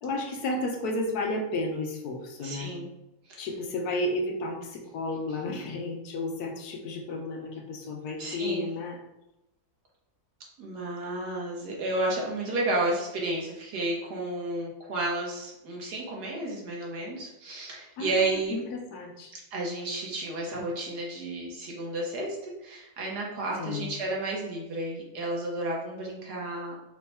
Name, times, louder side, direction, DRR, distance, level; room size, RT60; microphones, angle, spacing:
voice 1, 0.0-2.7 3.4-9.0 18.0-18.4 18.7-19.3 23.6-23.9, left 2 dB, 75° left, 2 dB, 1.2 m, -32 dB
voice 2, 2.4-2.9 3.3-3.5 8.2-8.7 10.6-18.6 19.5-26.7, right 2 dB, 80° right, -2 dB, 1.7 m, -32 dB
4.6 x 2.2 x 4.1 m, 0.91 s
omnidirectional pair, 1.7 m